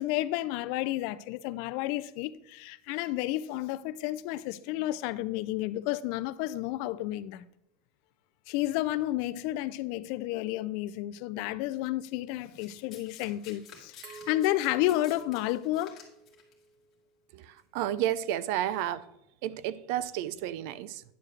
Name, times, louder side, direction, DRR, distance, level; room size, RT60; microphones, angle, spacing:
voice 1, 0.0-7.4 8.5-16.0, left 15 dB, 50° left, 0.3 m, -31 dB
Domestic sounds home sounds, 12.6-16.5 17.4-17.6, left 7 dB, 25° left, 1.7 m, -51 dB
Glass, 14.0-16.8, right 3 dB, 25° right, 1.2 m, -48 dB
voice 2, 17.3-19.1 19.4-21.0, right 12 dB, 50° right, 0.4 m, -31 dB
9.7 x 6.8 x 3.2 m
supercardioid pair, 175°, 0 cm